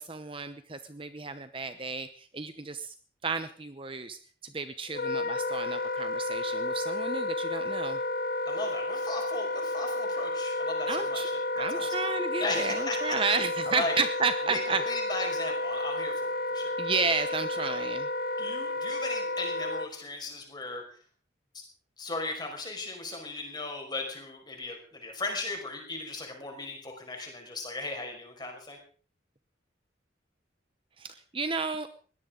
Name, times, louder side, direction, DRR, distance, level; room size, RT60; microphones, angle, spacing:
voice 1, 0.0-2.9 3.2-8.0 10.9-11.3 11.5-14.8 16.8-18.1 31.0-31.9, right 4 dB, 30° right, 10 dB, 0.8 m, -32 dB
Wind instrument woodwind instrument, 4.9-19.9, left 2 dB, 50° left, 1.0 m, -31 dB
voice 2, 8.5-12.0 12.4-13.2 13.7-14.0 14.4-16.8 17.5-17.8 18.4-20.9 21.5-21.6 22.0-28.8, left 2 dB, 20° left, 2 dB, 5.5 m, -37 dB
21.5 x 17.5 x 3.9 m, 0.42 s
head